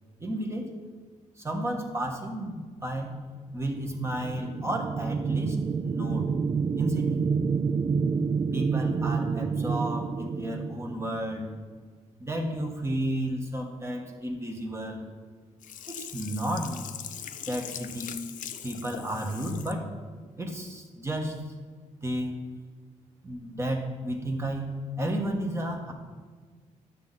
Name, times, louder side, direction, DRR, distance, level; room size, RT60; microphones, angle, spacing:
voice 1, 0.2-0.7 1.4-3.1 3.5-6.3 6.7-7.3 8.5-11.5 12.2-15.1 15.9-16.9 17.5-18.2 18.6-19.9 20.4-21.4 22.0-22.3 23.2-25.9, right 1 dB, 20° right, 2 dB, 1.4 m, -32 dB
sound 1, 3.8-11.5, right 5 dB, 35° right, 0.3 m, -28 dB
Sink (filling or washing), 15.6-19.8 20.2-20.3, left 9 dB, 80° left, 0.6 m, -41 dB
12.5 x 7.4 x 4.1 m, 1.5 s
cardioid pair, 130°, 13 cm